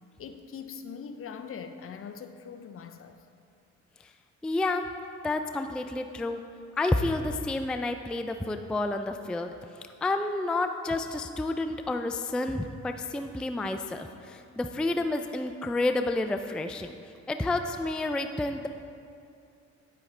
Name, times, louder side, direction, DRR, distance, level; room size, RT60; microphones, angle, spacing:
voice 1, 0.2-3.3, left 6 dB, 50° left, 9 dB, 0.6 m, -42 dB
voice 2, 4.4-4.9 5.2-6.4 6.8-9.5 10.0-16.9 17.3-18.7, left 2 dB, 5° left, 7 dB, 0.3 m, -30 dB
9.1 x 8.4 x 3.3 m, 2.5 s
cardioid pair, 90°, 30 cm